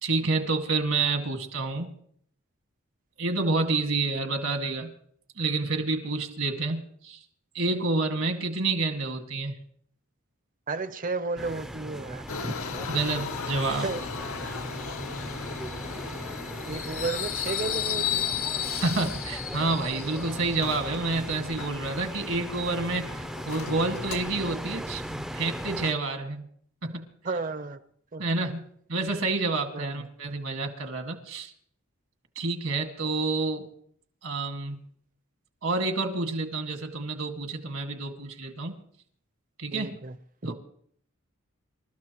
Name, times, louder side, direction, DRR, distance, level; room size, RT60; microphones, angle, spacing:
voice 1, 0.0-1.9 3.2-4.9 5.4-7.2 7.5-9.5 12.9-13.9 18.7-26.4 26.8-27.1 28.2-28.6 28.9-31.5 32.4-33.7 34.2-34.8 35.6-38.8 39.6-40.0 40.5-40.6, right 3 dB, 70° right, 2.0 m, -29 dB
voice 2, 10.7-12.5 13.8-14.0 16.7-18.3 27.2-27.8 28.1-28.2 29.7-29.9 39.7-40.1 40.4-40.5, right 3 dB, 40° right, 0.8 m, -32 dB
sound 1, 11.4-25.9, equal, 5° right, 0.5 m, -38 dB
Subway metro underground, 12.3-24.3, left 8 dB, 80° left, 0.8 m, -35 dB
27.5 x 13.0 x 3.0 m
head